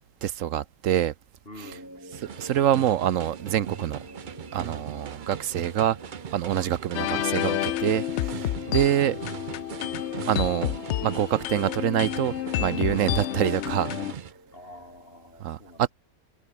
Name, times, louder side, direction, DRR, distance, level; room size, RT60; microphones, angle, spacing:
voice 1, 0.2-1.1 2.2-4.0 4.5-6.0 6.3-9.2 10.3-13.9 15.4-15.9, right 11 dB, 65° right, 1.0 m, -26 dB
voice 2, 1.4-1.9 4.7-5.1 6.5-6.8 8.6-9.4 12.9-13.3 14.5-15.9, left 1 dB, 40° left, 7.6 m, -46 dB
sound 1, 1.6-15.1, equal, 10° right, 6.4 m, -49 dB
sound 2, 2.1-14.3, right 7 dB, 45° right, 0.7 m, -39 dB
sound 3, 6.9-14.1, left 13 dB, 70° left, 0.7 m, -30 dB
omnidirectional pair, 1.6 m